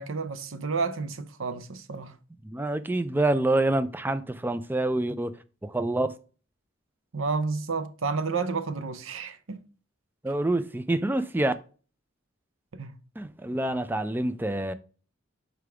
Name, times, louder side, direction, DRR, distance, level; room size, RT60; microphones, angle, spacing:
voice 1, 0.0-2.2 7.1-9.6 12.7-13.0, right 4 dB, 70° right, 0.7 m, -31 dB
voice 2, 2.4-5.3 5.6-6.2 10.2-11.5 13.2-14.7, right 2 dB, 10° right, 0.3 m, -27 dB
5.1 x 4.6 x 4.9 m
head